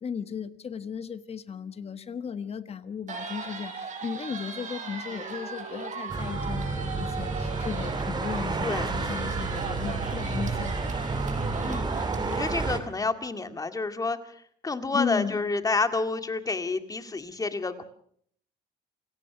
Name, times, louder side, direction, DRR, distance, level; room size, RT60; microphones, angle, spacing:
voice 1, 0.0-10.9 14.9-15.4, left 7 dB, 35° left, 12 dB, 1.4 m, -35 dB
sound 1, 3.1-12.7, right 5 dB, 50° right, 5.2 m, -37 dB
sound 2, 6.1-12.8, right 3 dB, 25° right, 2.9 m, -30 dB
voice 2, 12.3-14.2 14.6-17.8, left 3 dB, 20° left, 8 dB, 2.2 m, -29 dB
28.0 x 18.0 x 6.1 m, 0.62 s
cardioid pair, 110°, 17 cm